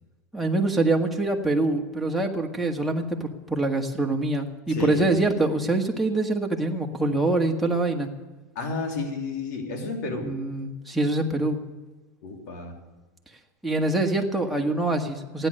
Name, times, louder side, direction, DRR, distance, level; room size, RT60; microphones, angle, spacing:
voice 1, 0.3-8.1 10.2-11.6 13.6-15.5, right 2 dB, ahead, 0 dB, 1.7 m, -25 dB
voice 2, 4.7-5.4 8.5-10.3 12.2-12.8, left 3 dB, 80° left, 2 dB, 3.1 m, -31 dB
15.5 x 10.0 x 6.6 m, 1.2 s
supercardioid pair, 125°, 9 cm